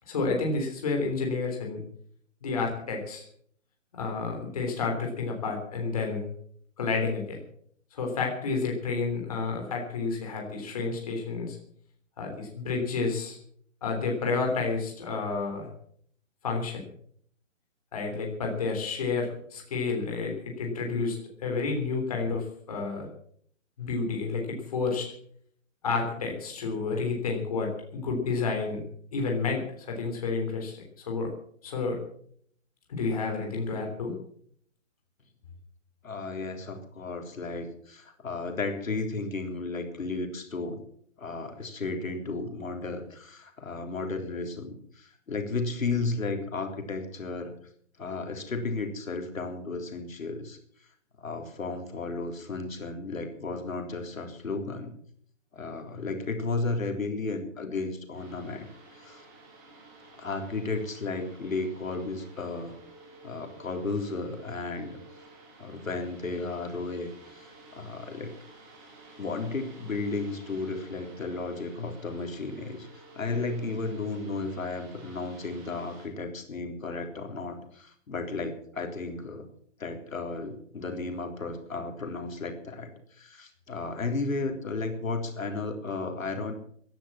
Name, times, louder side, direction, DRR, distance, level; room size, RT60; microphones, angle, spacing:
voice 1, 0.1-1.8 2.4-3.2 4.0-6.2 6.8-7.4 7.9-11.6 12.2-13.4 13.8-15.7 16.4-16.8 17.9-23.1 23.8-25.0 25.8-28.8 29.1-31.3 31.6-32.0 32.9-34.1, left 4 dB, 30° left, 1 dB, 3.6 m, -30 dB
voice 2, 36.0-40.8 41.2-47.5 48.0-50.6 51.2-54.9 55.5-58.7 58.9-59.3 60.1-62.7 63.2-65.0 65.6-68.3 69.2-79.5 79.8-86.5, left 3 dB, 85° left, 4 dB, 3.8 m, -34 dB
sound 1, 58.1-76.1, right 2 dB, 15° right, 3.1 m, -52 dB
16.5 x 10.5 x 7.4 m, 0.63 s
hypercardioid pair, 180°, 39 cm